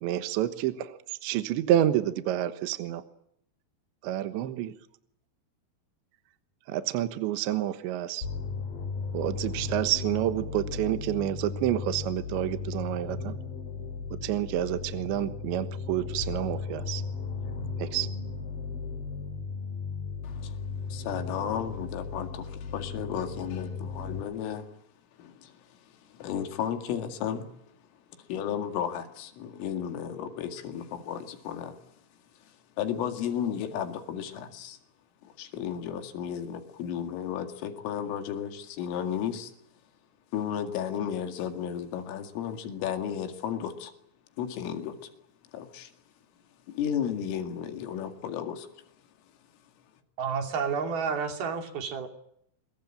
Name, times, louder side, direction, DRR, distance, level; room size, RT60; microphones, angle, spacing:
voice 1, 0.0-3.0 4.0-4.7 6.7-8.3 9.1-13.3 14.2-17.0 17.8-18.1, right 12 dB, 75° right, 10 dB, 3.4 m, -29 dB
sound 1, 8.2-24.2, left 5 dB, 50° left, 4.5 m, -36 dB
voice 2, 20.2-20.6 20.9-24.7 25.2-27.5 28.2-31.8 32.5-34.8 35.2-39.5 40.3-43.9 44.4-45.1 45.5-45.9 46.7-48.7, left 9 dB, 85° left, 7 dB, 4.8 m, -34 dB
voice 3, 50.2-52.1, right 6 dB, 55° right, 5 dB, 4.5 m, -30 dB
26.5 x 22.0 x 8.9 m, 0.74 s
omnidirectional pair, 5.6 m